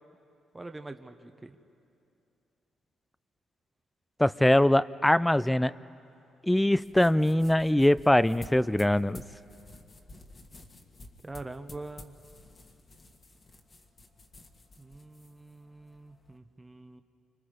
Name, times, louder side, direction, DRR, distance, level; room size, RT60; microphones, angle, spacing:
voice 1, 0.5-1.6 11.2-12.1 14.8-17.0, right 2 dB, 15° right, 7 dB, 1.0 m, -44 dB
voice 2, 4.2-5.7 6.4-9.2, left 1 dB, 5° left, 18 dB, 0.4 m, -22 dB
sound 1, 6.7-16.4, left 2 dB, 35° left, 1.7 m, -52 dB
29.0 x 25.5 x 5.1 m, 2.6 s
cardioid pair, 90°, 0 cm